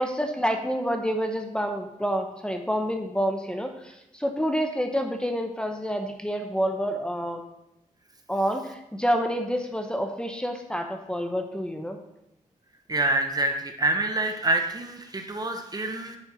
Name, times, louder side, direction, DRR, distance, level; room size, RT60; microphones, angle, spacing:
voice 1, 0.0-7.4 8.3-12.0, equal, 5° left, 4 dB, 0.9 m, -28 dB
voice 2, 12.9-16.2, right 2 dB, 30° right, 5 dB, 0.9 m, -26 dB
9.7 x 4.4 x 4.4 m, 0.85 s
cardioid pair, 75°, 14 cm